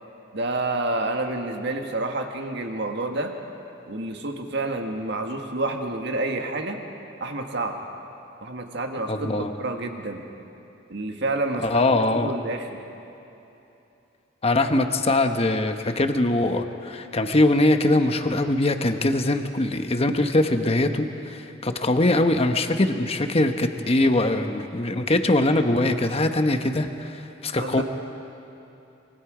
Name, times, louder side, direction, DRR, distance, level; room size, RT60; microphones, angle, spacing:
voice 1, 0.3-3.3 3.9-6.8 7.2-7.8 8.4-10.2 10.9-11.6 11.9-12.8 27.6-27.8, right 2 dB, 60° right, 4 dB, 1.7 m, -29 dB
voice 2, 9.1-9.5 11.6-12.3 14.4-27.8, left 2 dB, 30° left, 7 dB, 1.1 m, -22 dB
25.5 x 22.5 x 5.0 m, 2.9 s
head